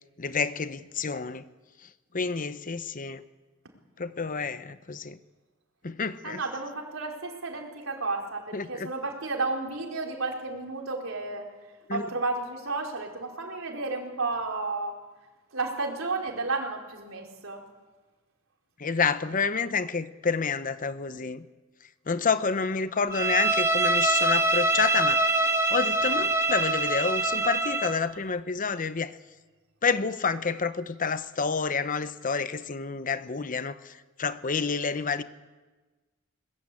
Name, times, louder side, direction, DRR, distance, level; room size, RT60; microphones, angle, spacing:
voice 1, 0.2-1.4 2.1-3.2 4.0-5.2 5.8-6.4 8.5-8.9 11.9-12.0 18.8-21.4 22.1-25.2 25.7-29.2 29.8-33.9 34.2-35.2, left 5 dB, 40° left, 13 dB, 0.9 m, -29 dB
voice 2, 6.2-15.0 15.5-17.6, right 3 dB, 75° right, 1 dB, 4.5 m, -32 dB
Bowed string instrument, 23.1-28.0, right 2 dB, 15° right, 1.3 m, -24 dB
22.0 x 20.5 x 8.6 m, 1.2 s
head